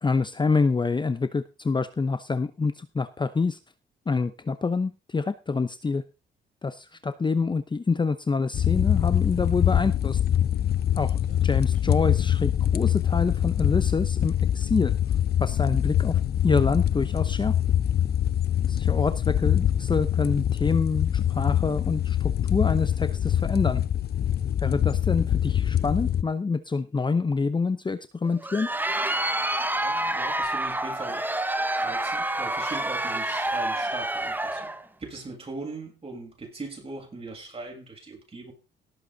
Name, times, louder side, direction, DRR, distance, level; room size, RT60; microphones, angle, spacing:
voice 1, 0.0-3.6 4.1-6.0 6.6-10.2 10.9-14.9 15.4-17.5 18.7-23.8 24.6-28.7, left 4 dB, 25° left, 12 dB, 0.8 m, -26 dB
sound 1, 8.5-26.2, left 10 dB, 55° left, 0.7 m, -24 dB
Crowd, 28.2-34.8, right 1 dB, 10° right, 1.2 m, -28 dB
voice 2, 29.7-31.3 31.7-34.7 35.0-38.5, right 3 dB, 30° right, 1 dB, 8.0 m, -40 dB
18.0 x 8.1 x 4.0 m, 0.29 s
cardioid pair, 90°, 20 cm